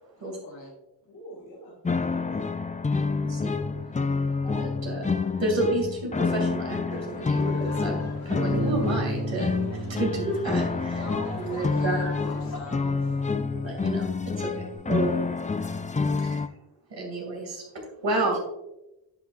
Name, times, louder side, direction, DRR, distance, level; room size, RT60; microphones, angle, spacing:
voice 1, 0.2-0.7 11.0-13.2, left 1 dB, 40° left, -2 dB, 1.3 m, -42 dB
voice 2, 1.0-2.4 18.1-18.4, equal, 70° left, -5 dB, 2.2 m, -44 dB
sound 1, 1.8-16.5, left 4 dB, 20° left, 0.4 m, -28 dB
voice 3, 3.2-3.5 4.4-5.1 5.4-11.0 11.4-12.2 13.6-15.1 15.5-15.8 16.2-16.4 16.9-18.4, right 2 dB, 75° right, 0 dB, 2.7 m, -31 dB
sound 2, 6.9-12.6, left 2 dB, 55° left, 1.8 m, -46 dB
Bass guitar, 8.5-14.8, right 3 dB, 40° right, 0.9 m, -37 dB
10.5 x 6.0 x 2.5 m, 0.93 s
wide cardioid pair, 75°, 44 cm